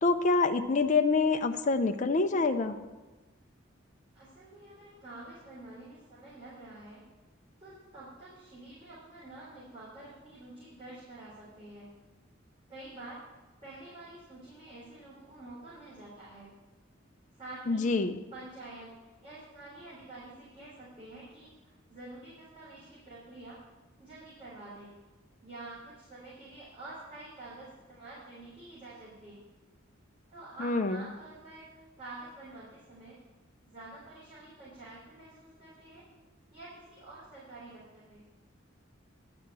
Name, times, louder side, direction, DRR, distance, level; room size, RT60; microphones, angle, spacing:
voice 1, 0.0-2.8 17.7-18.2 30.6-31.0, left 3 dB, 40° left, 6 dB, 0.5 m, -26 dB
voice 2, 4.1-7.0 7.6-11.9 12.7-13.2 13.6-16.5 17.3-17.9 18.3-23.6 24.0-24.9 25.4-29.4 30.3-33.2 33.7-36.0 36.5-38.2, right 2 dB, 25° right, -10 dB, 3.7 m, -48 dB
10.5 x 5.7 x 8.3 m, 1.2 s
head